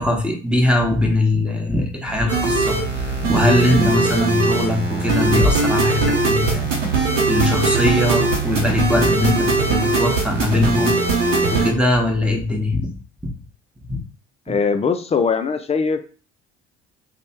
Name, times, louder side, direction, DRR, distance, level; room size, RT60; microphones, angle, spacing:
voice 1, 0.0-6.7 7.3-12.9 13.2-13.3 13.9-14.0 14.5-14.6, left 1 dB, 5° right, 0 dB, 1.0 m, -21 dB
sound 1, 2.1-10.5, equal, 35° right, 1.0 m, -32 dB
sound 2, 2.3-11.7, right 3 dB, 90° right, 0.8 m, -20 dB
voice 2, 14.5-16.1, left 5 dB, 20° left, 8 dB, 0.3 m, -21 dB
3.2 x 2.1 x 4.2 m, 0.38 s
figure-of-eight pair, 55°, 36 cm